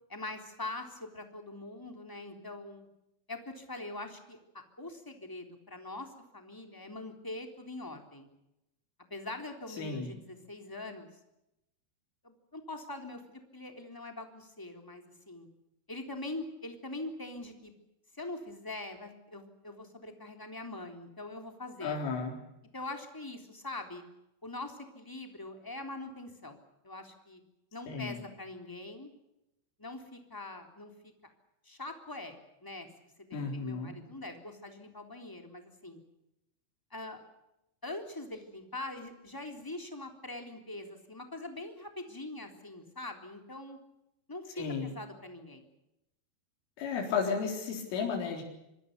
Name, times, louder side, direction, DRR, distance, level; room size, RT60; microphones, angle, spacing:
voice 1, 0.1-2.9 3.3-8.3 9.1-11.1 12.2-15.5 15.9-17.7 18.1-22.0 22.7-24.0 24.4-27.4 27.7-29.1 29.8-31.3 31.6-36.0 36.9-37.2 37.8-43.8 44.3-45.6, left 2 dB, 5° left, 4 dB, 2.6 m, -43 dB
voice 2, 9.8-10.1 21.8-22.4 27.9-28.2 33.3-33.9 44.6-44.9 46.8-48.4, left 5 dB, 80° left, 0 dB, 6.6 m, -33 dB
26.5 x 24.5 x 6.8 m, 0.88 s
omnidirectional pair, 5.7 m